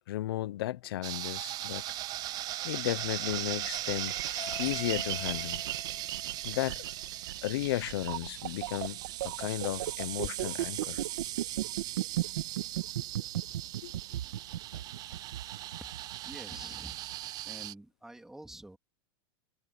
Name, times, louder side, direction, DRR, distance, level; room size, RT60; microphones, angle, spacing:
voice 1, 0.0-1.8 2.6-5.6 6.4-6.8 7.4-11.0 13.8-13.9, left 15 dB, 80° left, 0.9 m, -34 dB
sound 1, 1.0-17.7, right 15 dB, 30° right, 0.7 m, -39 dB
sound 2, 3.0-17.2, right 14 dB, 90° right, 1.8 m, -37 dB
Doorbell, 3.7-4.0 4.2-8.4 8.8-10.3, left 9 dB, 25° left, 6.2 m, -47 dB
voice 2, 16.2-17.0 17.4-18.8, right 1 dB, 5° right, 3.2 m, -47 dB
supercardioid pair, 155°, 12 cm